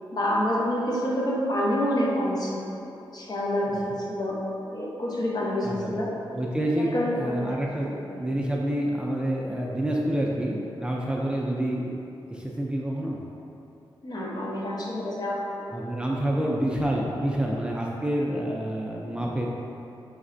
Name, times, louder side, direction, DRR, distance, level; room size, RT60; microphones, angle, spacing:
voice 1, 0.1-2.7 3.1-3.8 4.1-4.4 4.7-6.1 6.8-7.6 8.1-8.3 14.0-15.4, left 1 dB, 45° left, -4 dB, 0.8 m, -27 dB
voice 2, 5.6-6.0 6.3-11.9 12.3-13.2 15.7-19.5, right 1 dB, 10° right, -3 dB, 0.4 m, -28 dB
5.2 x 3.2 x 2.5 m, 2.9 s
cardioid pair, 90°, 9 cm